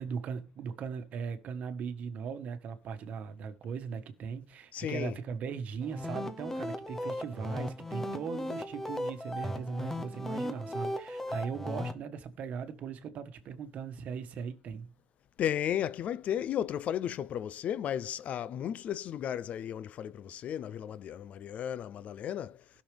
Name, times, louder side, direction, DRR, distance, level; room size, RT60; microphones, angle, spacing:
voice 1, 0.0-14.9, right 6 dB, 45° right, 1.4 m, -39 dB
voice 2, 4.7-5.2 15.4-22.7, left 10 dB, 40° left, 0.4 m, -34 dB
sound 1, 5.8-11.9, left 1 dB, 10° left, 0.8 m, -37 dB
16.5 x 6.4 x 3.4 m
cardioid pair, 150°, 4 cm